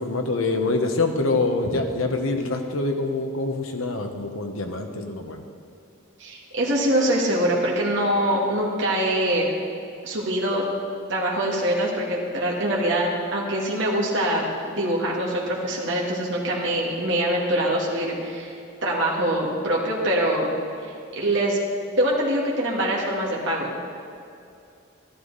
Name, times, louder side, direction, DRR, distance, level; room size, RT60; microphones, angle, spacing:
voice 1, 0.0-5.4, left 3 dB, 90° left, 5 dB, 1.1 m, -25 dB
voice 2, 6.2-9.5 10.0-10.6 11.1-18.6 18.8-20.6 21.1-21.6 22.0-23.8, right 1 dB, 65° right, -4 dB, 1.8 m, -24 dB
13.0 x 12.0 x 4.0 m, 2.6 s
head